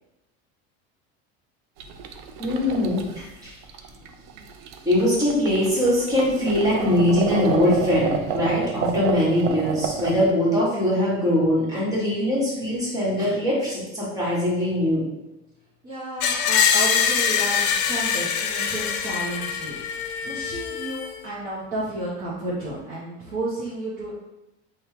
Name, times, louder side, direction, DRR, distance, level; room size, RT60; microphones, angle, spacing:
sound 1, 1.8-10.3, right 6 dB, 75° right, 0.5 m, -30 dB
voice 1, 2.4-3.5 4.8-15.0, left 1 dB, 10° right, -7 dB, 1.3 m, -22 dB
voice 2, 15.8-24.1, right 1 dB, 25° right, -8 dB, 0.8 m, -32 dB
Screech, 16.2-21.2, left 7 dB, 85° left, 0.5 m, -24 dB
3.5 x 2.3 x 4.4 m, 0.96 s
cardioid pair, 155°, 31 cm